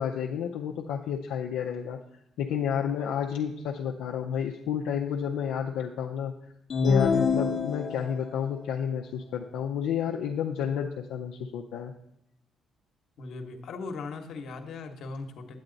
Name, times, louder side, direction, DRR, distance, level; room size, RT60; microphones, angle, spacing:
voice 1, 0.0-2.0 2.4-6.3 6.8-11.9, left 8 dB, 85° left, 0 dB, 0.5 m, -31 dB
sound 1, 6.7-8.3, left 5 dB, 45° left, 0.9 m, -26 dB
voice 2, 13.2-15.6, left 3 dB, 65° left, 5 dB, 1.1 m, -38 dB
9.1 x 7.4 x 3.9 m, 0.78 s
cardioid pair, 80°, 0 cm